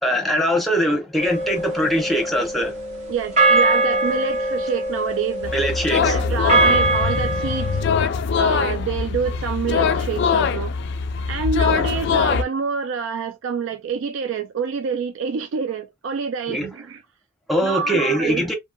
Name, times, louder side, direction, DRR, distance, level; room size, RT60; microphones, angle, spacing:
voice 1, 0.0-2.8 5.5-6.2 16.5-16.7 17.5-18.6, equal, ahead, 0.7 m, -22 dB
sound 1, 1.2-7.8, right 2 dB, 35° right, 1.0 m, -22 dB
voice 2, 3.1-5.5 5.9-7.8 8.4-10.7 11.3-17.0 17.6-18.5, right 6 dB, 70° right, 0.3 m, -27 dB
sound 2, 5.4-12.4, left 6 dB, 60° left, 0.3 m, -22 dB
2.7 x 2.6 x 2.2 m
head